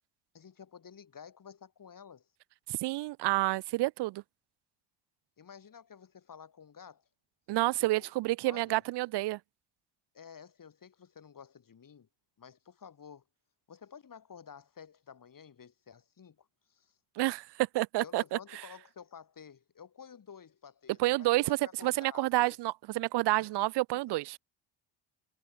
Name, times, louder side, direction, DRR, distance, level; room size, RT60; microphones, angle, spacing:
voice 1, 0.3-2.3 5.4-7.0 7.8-8.1 8.4-8.8 10.1-12.1 12.4-13.2 13.7-17.0 18.0-22.6 23.4-23.5, left 7 dB, 40° left, 3.8 m, -52 dB
voice 2, 2.7-4.2 7.5-9.4 17.2-18.4 21.0-24.4, right 18 dB, 55° right, 0.6 m, -29 dB
hypercardioid pair, 55°, 50 cm